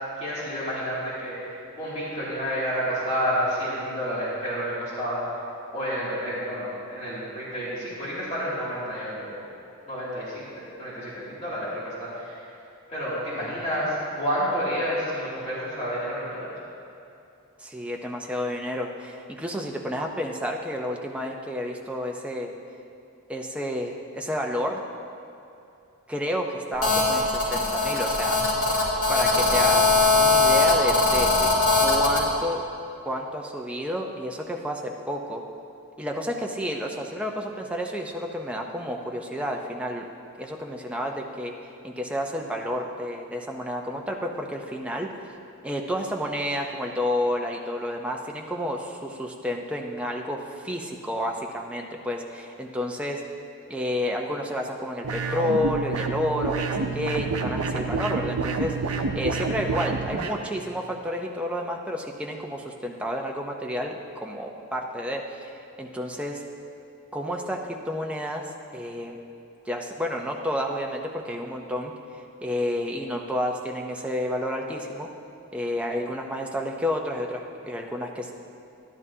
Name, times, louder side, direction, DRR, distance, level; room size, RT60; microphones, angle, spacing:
voice 1, 0.2-5.2 5.7-9.4 9.9-12.5 12.9-16.4, equal, 30° left, -10 dB, 2.6 m, -30 dB
voice 2, 17.6-22.5 23.3-24.8 26.1-28.5 29.1-29.9 30.1-31.5 31.8-32.6 33.0-35.4 36.0-40.0 40.4-45.3 45.6-53.2 53.7-66.4 67.1-69.2 69.6-71.9 72.4-75.1 75.5-78.3, equal, 5° right, 0 dB, 0.6 m, -30 dB
Telephone, 26.8-32.2, left 3 dB, 70° left, 2.5 m, -20 dB
sound 1, 55.0-60.4, right 4 dB, 80° right, 0.7 m, -28 dB
12.0 x 11.0 x 2.8 m, 2.8 s
head